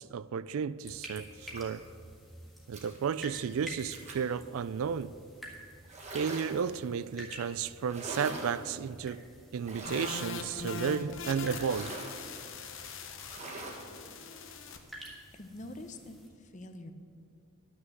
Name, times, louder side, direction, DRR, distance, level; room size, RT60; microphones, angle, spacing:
voice 1, 0.0-1.8 2.7-5.1 6.1-9.3 9.5-11.9, right 6 dB, 70° right, 0.3 m, -33 dB
sound 1, 0.8-16.3, equal, ahead, 1.6 m, -50 dB
sound 2, 1.4-1.9 2.7-3.0 3.9-4.3 5.8-6.8 7.8-8.7 9.6-10.6 11.5-12.2 13.2-13.9, right 2 dB, 30° right, 1.6 m, -42 dB
sound 3, 9.8-14.8, left 5 dB, 60° left, 0.9 m, -42 dB
voice 2, 15.3-16.9, left 1 dB, 35° left, 0.7 m, -45 dB
11.0 x 6.3 x 7.7 m
head